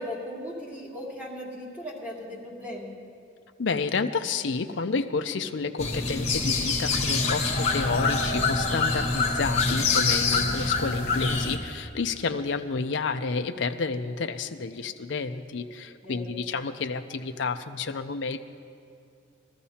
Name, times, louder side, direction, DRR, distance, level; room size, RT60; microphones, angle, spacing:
voice 1, 0.0-3.0 16.0-16.3, equal, 10° right, -5 dB, 2.5 m, -37 dB
voice 2, 3.6-18.4, left 4 dB, 70° left, 7 dB, 0.5 m, -30 dB
sound 1, 5.8-11.6, left 3 dB, 30° left, 1.5 m, -25 dB
22.0 x 13.5 x 2.8 m, 2.6 s
head